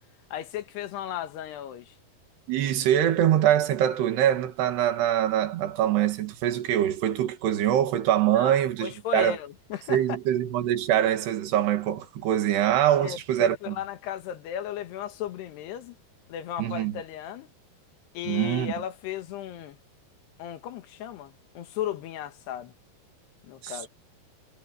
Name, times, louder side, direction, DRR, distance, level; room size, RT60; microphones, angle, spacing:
voice 1, 0.3-2.0 8.4-10.2 13.0-16.0 16.3-17.5 18.2-19.8 20.4-22.7 23.4-23.9, left 11 dB, 85° left, 3.6 m, -35 dB
voice 2, 2.5-9.4 9.9-13.8 16.6-17.0 18.3-18.7 23.6-23.9, right 11 dB, 80° right, 4.1 m, -24 dB
omnidirectional pair, 4.7 m